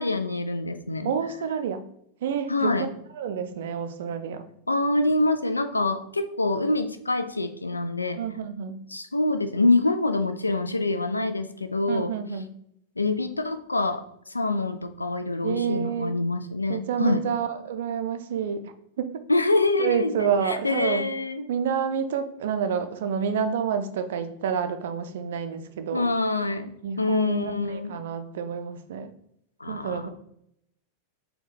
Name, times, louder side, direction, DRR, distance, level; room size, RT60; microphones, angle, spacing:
voice 1, 0.0-1.1 2.5-2.9 4.7-8.2 8.9-12.1 13.0-14.0 14.3-17.2 19.3-21.4 25.9-26.7 27.0-27.9 29.6-30.1, left 2 dB, 80° left, 8 dB, 0.3 m, -25 dB
voice 2, 1.0-1.8 2.2-2.9 3.2-4.5 8.2-8.8 11.9-12.5 15.4-16.1 16.7-19.2 19.8-21.0 21.5-26.1 26.8-29.1 29.6-30.1, right 7 dB, 55° right, 9 dB, 0.4 m, -29 dB
4.3 x 2.2 x 3.3 m, 0.74 s
figure-of-eight pair, 90°, 0 cm